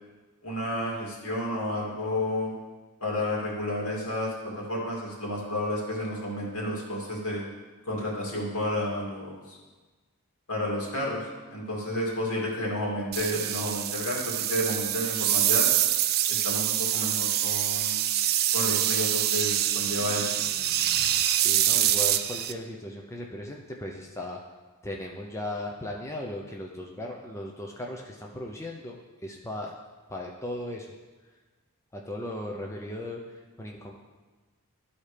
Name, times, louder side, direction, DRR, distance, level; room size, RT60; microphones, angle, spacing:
voice 1, 0.4-2.5 3.0-7.5 7.8-9.6 10.5-15.7 16.3-18.0 18.5-20.3, left 1 dB, 70° left, -3 dB, 2.5 m, -31 dB
sound 1, 13.1-22.5, right 12 dB, 45° right, 0.4 m, -25 dB
voice 2, 21.3-24.4 24.8-29.7 30.1-30.9 31.9-33.9, left 1 dB, 15° left, 0 dB, 0.6 m, -37 dB
12.5 x 4.3 x 5.0 m, 1.3 s
head